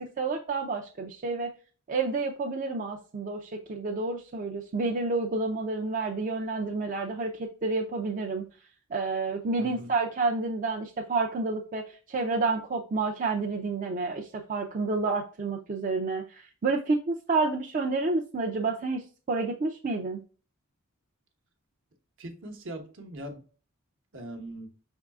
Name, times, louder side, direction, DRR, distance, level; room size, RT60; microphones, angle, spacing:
voice 1, 0.0-1.5 1.9-8.4 8.9-20.2, right 3 dB, 40° right, 0.5 m, -29 dB
voice 2, 9.6-9.9 22.2-23.4 24.1-24.7, right 1 dB, 60° right, 1.0 m, -41 dB
5.4 x 3.6 x 2.3 m
head